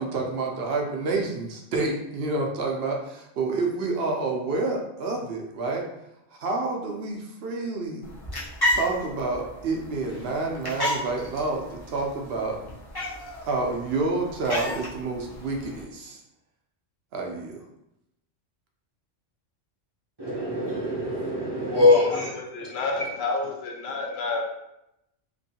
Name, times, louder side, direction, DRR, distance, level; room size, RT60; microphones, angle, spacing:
voice 1, 0.0-5.8 6.4-8.1 8.7-12.6 13.4-16.2 17.1-17.5, right 3 dB, 65° right, 1 dB, 0.7 m, -28 dB
sound 1, 8.0-15.8, left 1 dB, 30° left, 0.5 m, -33 dB
voice 2, 20.2-22.3, left 2 dB, 45° right, -7 dB, 0.3 m, -22 dB
voice 3, 22.1-24.4, left 3 dB, 65° left, 1 dB, 0.8 m, -30 dB
3.0 x 2.6 x 2.7 m, 0.84 s
omnidirectional pair, 1.3 m